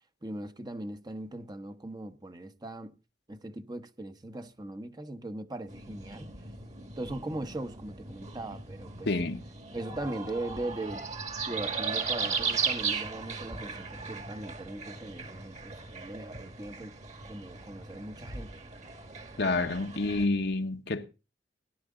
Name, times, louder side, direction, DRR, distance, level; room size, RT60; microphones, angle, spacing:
voice 1, 0.2-3.0 3.3-6.3 7.0-9.1 9.7-11.1 11.4-17.0 17.2-18.6, right 1 dB, 25° right, 1.0 m, -39 dB
sound 1, 5.7-20.3, right 5 dB, 40° right, 2.0 m, -37 dB
voice 2, 9.0-9.4 19.4-21.1, left 2 dB, 65° left, 1.1 m, -28 dB
17.0 x 11.5 x 3.7 m
head